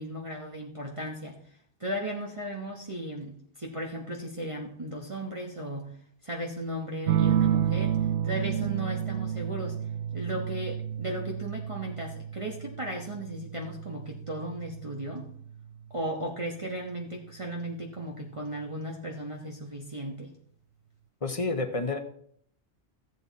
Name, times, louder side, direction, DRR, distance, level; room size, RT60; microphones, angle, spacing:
voice 1, 0.0-1.4 1.8-5.9 6.2-8.0 8.2-9.8 10.1-15.3 15.9-20.3, right 1 dB, 30° right, -2 dB, 1.2 m, -36 dB
sound 1, 7.1-16.2 17.6-18.2, right 9 dB, 85° right, 0.9 m, -31 dB
voice 2, 21.2-22.0, left 3 dB, 30° left, 6 dB, 1.1 m, -29 dB
14.5 x 8.2 x 4.1 m, 0.64 s
omnidirectional pair, 1.1 m